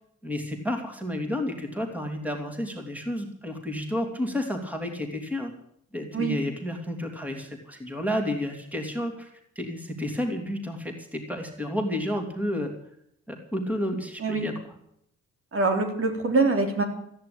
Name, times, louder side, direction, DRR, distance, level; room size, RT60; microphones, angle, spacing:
voice 1, 0.2-5.5 5.9-12.7 13.3-14.5, left 1 dB, 5° right, 4 dB, 3.2 m, -31 dB
voice 2, 15.5-16.8, right 3 dB, 45° right, 4 dB, 3.6 m, -24 dB
14.5 x 10.5 x 8.8 m, 0.71 s
cardioid pair, 90°, 30 cm